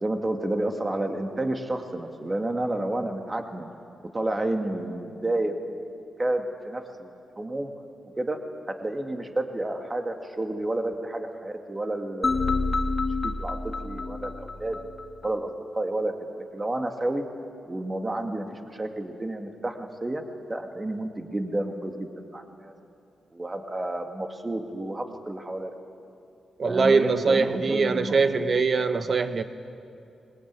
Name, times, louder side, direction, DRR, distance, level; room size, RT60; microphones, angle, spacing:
voice 1, 0.0-3.7 4.1-5.8 6.2-7.1 7.4-7.7 8.2-8.4 8.7-12.8 13.2-13.6 13.8-14.8 15.2-17.2 17.7-20.2 20.5-22.7 23.3-25.7 26.6-28.5, right 1 dB, 25° right, 4 dB, 2.3 m, -30 dB
sound 1, 12.2-15.3, left 3 dB, 40° left, 1.6 m, -28 dB
voice 2, 26.6-29.4, right 4 dB, 55° right, 10 dB, 1.2 m, -22 dB
21.0 x 19.5 x 8.9 m, 2.5 s
cardioid pair, 55°, 0 cm